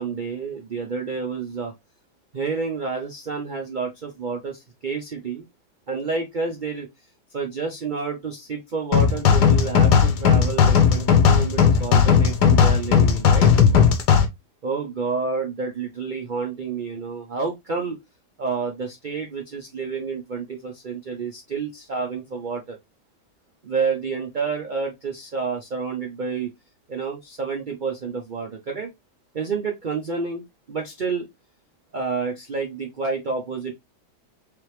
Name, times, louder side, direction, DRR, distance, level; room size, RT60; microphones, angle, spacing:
voice 1, 0.0-1.7 2.3-5.4 5.9-6.9 7.3-13.5 14.6-18.0 18.4-22.8 23.6-26.5 26.9-28.9 29.3-31.3 31.9-33.7, right 5 dB, 75° right, 0.4 m, -29 dB
sound 1, 8.9-14.3, left 7 dB, 75° left, 1.3 m, -16 dB
3.6 x 3.4 x 3.0 m
omnidirectional pair, 1.8 m